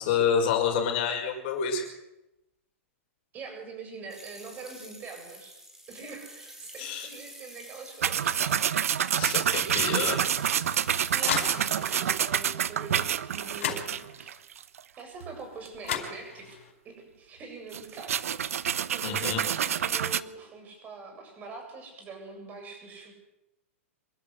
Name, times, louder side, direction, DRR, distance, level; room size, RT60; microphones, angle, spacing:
voice 1, 0.0-1.8 6.8-7.1 9.2-10.2 19.0-19.4, left 7 dB, 45° left, 3 dB, 5.5 m, -28 dB
voice 2, 3.3-5.6 5.9-8.6 9.7-10.4 10.7-14.3 15.0-18.6 18.9-23.1, right 4 dB, 20° right, 4 dB, 7.8 m, -44 dB
sound 1, 4.1-12.1, right 1 dB, 5° right, 4.4 m, -48 dB
sound 2, 8.0-14.8 15.2-15.3 15.6-15.8 17.7-20.2, right 9 dB, 80° right, 1.0 m, -28 dB
sound 3, 10.6-12.0 13.2-13.3 13.6-14.4 15.5-15.6 15.8-16.7, left 8 dB, 75° left, 4.9 m, -35 dB
26.0 x 13.5 x 8.1 m, 0.94 s
hypercardioid pair, 150°, 8 cm